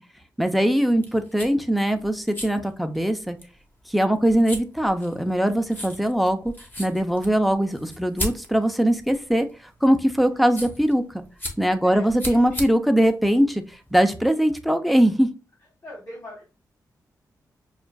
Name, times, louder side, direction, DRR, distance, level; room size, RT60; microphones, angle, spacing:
voice 1, 0.4-3.4 3.9-6.5 6.8-9.5 9.8-11.2 11.6-13.6 13.9-15.3, equal, ahead, 8 dB, 0.6 m, -21 dB
sound 1, 0.9-14.1, left 1 dB, 25° left, 1.1 m, -38 dB
voice 2, 11.8-12.6 15.8-16.4, left 1 dB, 45° left, -4 dB, 1.7 m, -42 dB
6.2 x 2.4 x 2.3 m, 0.32 s
cardioid pair, 70°, 7 cm